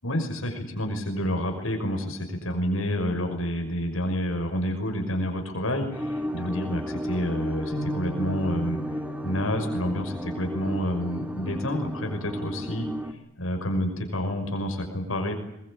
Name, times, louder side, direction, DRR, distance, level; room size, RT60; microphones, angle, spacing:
voice 1, 0.0-12.9 13.4-15.3, equal, 85° left, 5 dB, 5.9 m, -29 dB
sound 1, 5.9-13.1, equal, 10° right, 2.3 m, -33 dB
sound 2, 7.7-12.0 12.5-12.7 13.5-14.0, right 1 dB, 50° left, 1.6 m, -39 dB
22.5 x 22.5 x 8.8 m, 0.86 s
head